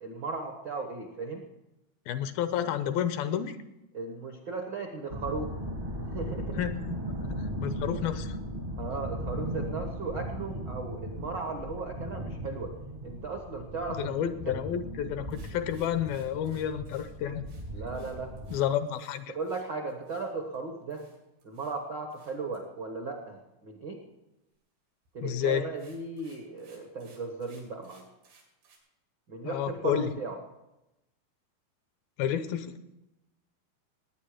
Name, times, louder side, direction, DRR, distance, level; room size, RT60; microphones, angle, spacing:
voice 1, 0.0-1.4 3.9-5.5 6.0-6.6 8.8-12.7 13.0-14.5 17.7-18.3 19.3-21.1 21.4-24.0 25.1-28.0 29.3-30.4, right 3 dB, 65° right, 3 dB, 1.1 m, -36 dB
voice 2, 2.1-3.6 6.6-7.0 7.3-8.4 14.0-17.5 18.5-19.3 25.2-25.7 29.4-30.2 32.2-32.8, left 10 dB, 80° left, 11 dB, 2.4 m, -30 dB
sound 1, 5.1-18.6, equal, 40° right, 0.7 m, -37 dB
sound 2, 15.3-20.6 20.9-21.8 22.1-22.6 25.1-25.3 25.6-28.8, right 5 dB, 85° right, 5.2 m, -62 dB
19.0 x 9.5 x 5.0 m, 0.94 s
omnidirectional pair, 4.4 m